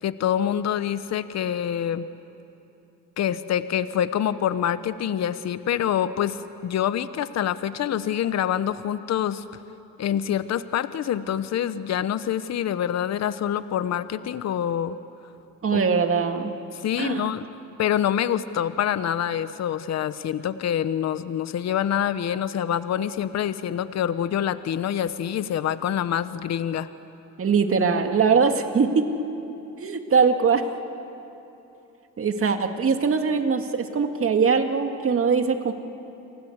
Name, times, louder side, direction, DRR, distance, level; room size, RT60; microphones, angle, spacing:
voice 1, 0.0-2.1 3.2-9.4 10.0-15.0 15.7-15.8 16.8-17.4 17.8-26.9, left 10 dB, 60° left, 13 dB, 0.9 m, -26 dB
voice 2, 15.6-16.5 17.0-17.3 27.4-29.1 29.8-30.6 32.2-35.7, right 5 dB, 45° right, 6 dB, 2.2 m, -22 dB
29.5 x 24.0 x 8.0 m, 3.0 s
cardioid pair, 90°, 30 cm